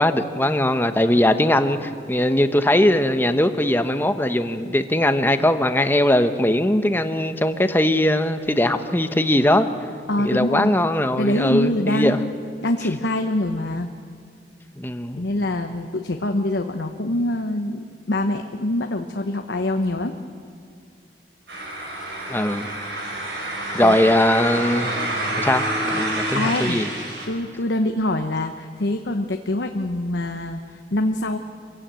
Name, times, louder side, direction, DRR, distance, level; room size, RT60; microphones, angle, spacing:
voice 1, 0.0-9.7 10.2-12.2 14.8-15.2 22.3-22.7 23.7-24.9 25.4-26.9, left 1 dB, 10° left, 9 dB, 0.9 m, -20 dB
voice 2, 10.1-10.7 11.2-12.3 12.6-13.9 15.2-20.1 23.8-24.0 26.3-31.4, left 1 dB, 80° left, 5 dB, 1.0 m, -24 dB
sound 1, 21.5-27.3, right 1 dB, 75° right, 5.3 m, -28 dB
25.0 x 16.0 x 9.0 m, 2.3 s
head